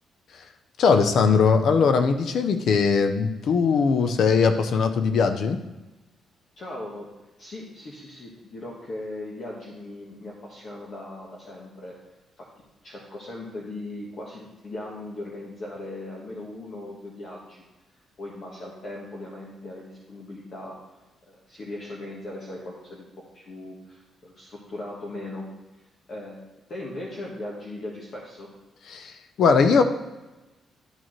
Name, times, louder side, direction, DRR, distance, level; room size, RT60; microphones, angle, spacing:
voice 1, 0.8-5.6 28.9-29.8, left 5 dB, 60° left, 8 dB, 0.6 m, -20 dB
voice 2, 6.6-7.1 7.4-12.0 12.4-12.5 12.8-17.6 18.2-20.8 21.2-23.0 23.3-25.5 26.1-26.4 26.7-28.5, left 1 dB, 40° left, -3 dB, 1.4 m, -38 dB
12.0 x 6.4 x 3.1 m, 1.1 s
cardioid pair, 140°, 0 cm